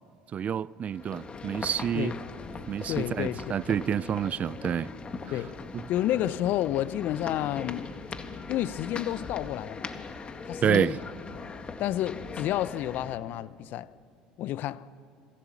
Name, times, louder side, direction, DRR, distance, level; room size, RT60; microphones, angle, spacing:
voice 1, 0.3-2.1 2.7-4.9 10.6-11.0, right 8 dB, 40° right, 0.5 m, -28 dB
sound 1, 0.9-13.2, left 4 dB, 30° left, 2.0 m, -40 dB
voice 2, 2.9-3.6 5.3-5.6 5.9-7.9 8.5-9.9 10.4-10.9 11.8-13.9 14.4-14.9, left 13 dB, 55° left, 0.7 m, -30 dB
27.0 x 23.0 x 7.3 m
hypercardioid pair, 75°, 4 cm